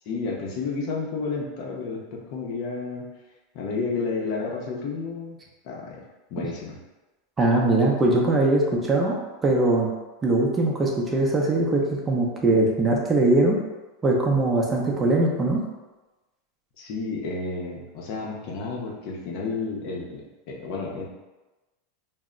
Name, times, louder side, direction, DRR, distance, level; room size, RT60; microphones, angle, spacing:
voice 1, 0.1-3.0 3.5-5.4 5.6-6.0 6.3-6.7 16.8-21.1, left 4 dB, 60° left, -2 dB, 0.6 m, -31 dB
voice 2, 7.4-9.9 10.2-13.6 14.0-15.6, right 2 dB, 25° right, -1 dB, 0.5 m, -21 dB
2.1 x 2.0 x 3.6 m, 1.1 s
hypercardioid pair, 110°, 0 cm